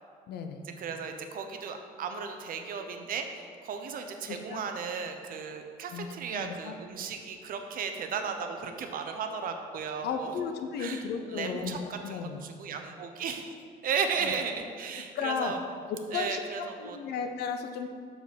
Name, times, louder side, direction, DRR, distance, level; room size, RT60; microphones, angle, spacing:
voice 1, 0.3-0.6 4.3-4.6 5.9-6.7 10.0-12.4 14.2-14.3 15.1-15.5 16.1-17.9, left 6 dB, 75° left, 6 dB, 0.7 m, -34 dB
voice 2, 0.8-10.3 10.8-11.0 11.3-13.5 13.8-15.6 16.1-17.0, right 6 dB, 55° right, 6 dB, 0.7 m, -35 dB
6.0 x 5.3 x 5.1 m, 2.1 s
cardioid pair, 110°, 17 cm